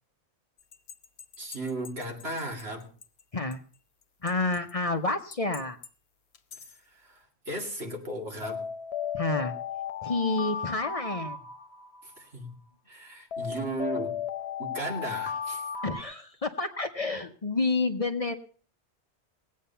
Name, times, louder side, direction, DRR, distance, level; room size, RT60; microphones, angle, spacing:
sound 1, 0.7-2.6 3.0-3.1 3.5-3.6 4.3-4.7 5.3-5.9 6.3-6.7 8.4-12.2 13.3-16.0, left 7 dB, 75° left, 1.2 m, -35 dB
voice 1, 1.4-2.9 6.9-8.6 12.0-12.5 12.9-14.2 14.6-15.7, right 2 dB, 70° right, 2 dB, 2.7 m, -36 dB
voice 2, 4.2-5.8 9.1-9.5 10.0-11.4 15.8-18.3, left 3 dB, 35° left, 7 dB, 0.8 m, -29 dB
19.5 x 8.5 x 5.7 m, 0.42 s
omnidirectional pair, 1.1 m